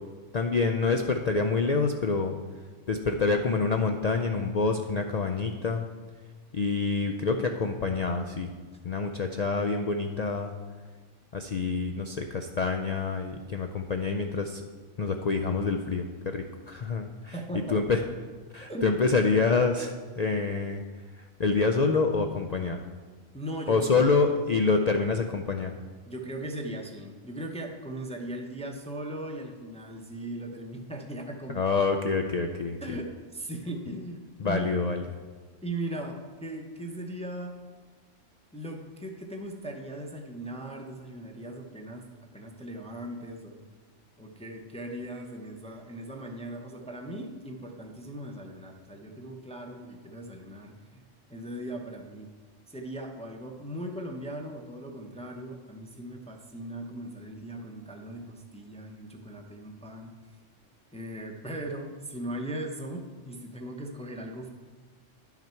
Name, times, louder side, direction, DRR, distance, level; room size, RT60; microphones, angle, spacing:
voice 1, 0.3-2.3 2.9-5.9 6.5-8.5 8.8-10.5 11.3-14.6 15.0-18.0 18.5-20.8 21.1-22.8 23.7-25.8 31.5-33.0 34.4-35.0, left 4 dB, 60° left, 4 dB, 0.4 m, -27 dB
voice 2, 17.3-17.8 18.7-19.0 23.3-24.1 26.1-31.6 32.8-34.7 35.6-37.6 38.5-43.6 44.2-51.0 51.3-52.3 52.7-60.1 60.9-64.5, right 1 dB, 5° left, 2 dB, 0.6 m, -38 dB
11.0 x 5.8 x 4.5 m, 1.4 s
omnidirectional pair, 1.3 m